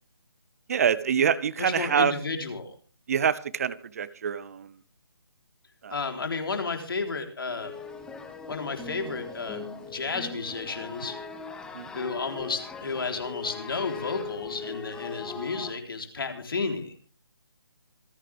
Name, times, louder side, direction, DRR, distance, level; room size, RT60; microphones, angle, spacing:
voice 1, 0.7-2.1 3.1-4.7 5.8-5.9 11.8-11.9, right 7 dB, 35° right, 19 dB, 0.7 m, -25 dB
voice 2, 1.6-2.7 5.9-7.7 8.5-11.2 11.9-16.9, left 4 dB, 65° left, 4 dB, 3.8 m, -32 dB
sound 1, 7.6-15.7, left 5 dB, 5° left, 1.2 m, -40 dB
26.5 x 9.2 x 3.5 m, 0.39 s
figure-of-eight pair, 155°, 13 cm